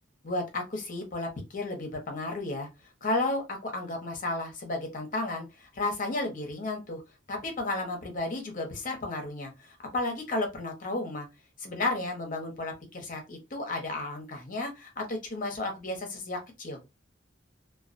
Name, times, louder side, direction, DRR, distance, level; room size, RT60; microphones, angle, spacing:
voice 1, 0.2-2.7 3.0-7.0 7.3-11.3 11.6-16.8, left 2 dB, 45° left, 3 dB, 0.8 m, -33 dB
2.3 x 2.2 x 2.5 m, 0.24 s
head